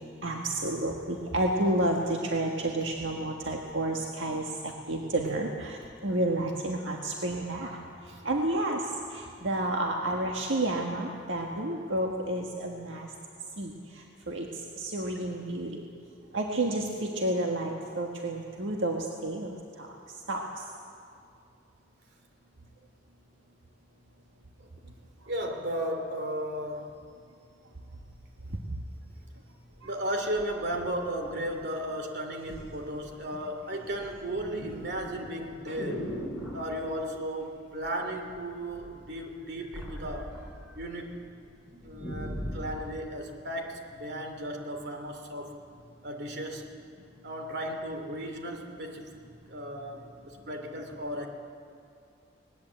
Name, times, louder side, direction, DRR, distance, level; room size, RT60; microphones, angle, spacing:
voice 1, 0.0-13.1 13.6-15.8 16.3-20.6 28.5-28.6 29.8-29.9 35.7-35.8, right 1 dB, 80° right, 0 dB, 1.7 m, -31 dB
voice 2, 25.3-27.0 29.8-36.1 36.5-40.3 40.6-41.1 41.8-45.5 46.0-46.7 47.2-49.1 49.5-51.3, right 1 dB, 60° right, 4 dB, 2.7 m, -35 dB
sound 1, 29.7-29.8 30.4-31.8 32.5-32.7 33.1-33.5 33.8-36.7 37.8-38.3 38.6-40.9 41.3-41.4 41.7-42.8 43.5-43.6, equal, ahead, 7.9 m, -39 dB
20.0 x 19.5 x 8.2 m, 2.4 s
head